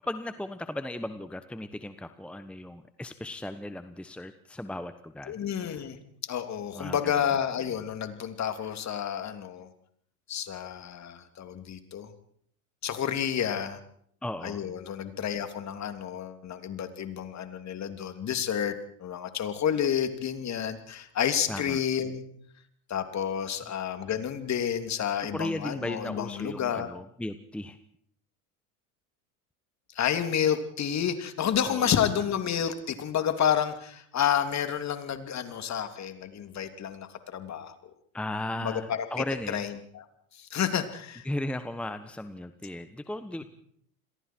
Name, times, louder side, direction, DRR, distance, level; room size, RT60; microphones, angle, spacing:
voice 1, 0.1-5.8 6.7-7.3 14.2-14.6 21.5-21.8 23.5-23.6 25.2-27.8 31.6-32.0 38.1-39.7 41.2-43.4, left 1 dB, 5° left, 11 dB, 1.2 m, -36 dB
voice 2, 5.3-6.0 6.2-9.7 10.3-12.1 12.8-13.8 14.4-22.2 22.9-26.9 29.9-37.7 38.6-39.1 39.5-40.1 40.3-41.3, left 9 dB, 40° left, 8 dB, 3.0 m, -30 dB
28.5 x 22.0 x 4.6 m, 0.64 s
hypercardioid pair, 85°, 44 cm